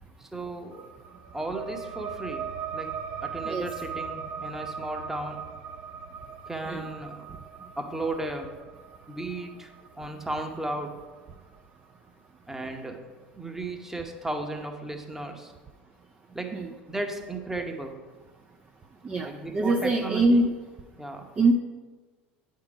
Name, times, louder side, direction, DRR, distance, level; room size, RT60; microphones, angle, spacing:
voice 1, 0.2-0.9 1.3-3.0 3.2-5.5 6.5-7.2 7.8-8.6 9.1-9.7 10.0-11.0 12.5-13.1 13.4-15.5 16.3-16.6 16.9-18.0 19.2-20.4 21.0-21.3, right 2 dB, 5° right, 4 dB, 0.9 m, -35 dB
sound 1, 0.7-11.8, right 7 dB, 50° right, 0.8 m, -39 dB
voice 2, 19.0-20.6 21.4-21.5, right 2 dB, 20° right, 3 dB, 0.5 m, -24 dB
8.8 x 3.8 x 4.8 m, 1.3 s
hypercardioid pair, 80°, 6 cm